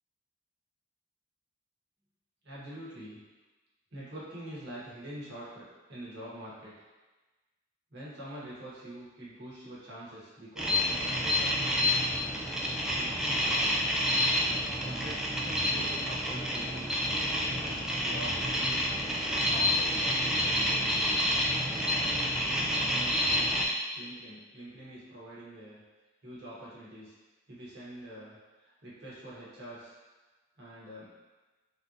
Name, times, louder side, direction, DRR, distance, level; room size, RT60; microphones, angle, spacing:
voice 1, 2.4-3.2 3.9-6.8 7.9-12.0 12.9-13.8 14.4-17.0 17.5-18.8 19.0-21.1 21.9-25.8 26.2-27.1 27.5-29.9 30.6-31.1, right 1 dB, 65° right, -8 dB, 1.1 m, -45 dB
sound 1, 10.6-23.7, left 1 dB, 5° right, 0.4 m, -29 dB
3.6 x 2.8 x 2.5 m, 1.2 s
head